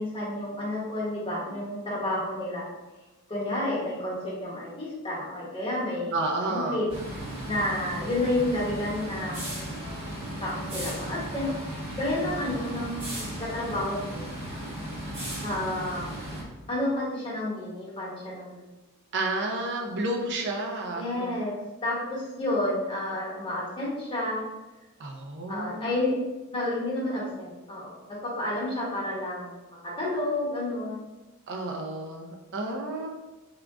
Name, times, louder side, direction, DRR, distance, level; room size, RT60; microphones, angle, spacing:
voice 1, 0.0-2.6 3.3-6.2 6.5-6.9 7.4-9.7 10.4-14.3 15.4-16.1 16.7-18.5 20.9-24.5 25.5-26.2 26.5-31.1, left 1 dB, 25° left, -6 dB, 1.1 m, -30 dB
voice 2, 6.1-6.9 19.1-21.3 25.0-25.9 31.5-33.1, right 2 dB, 55° right, 1 dB, 0.5 m, -31 dB
sound 1, 6.9-16.4, right 1 dB, 25° right, 1.1 m, -36 dB
3.6 x 2.3 x 3.5 m, 1.1 s
head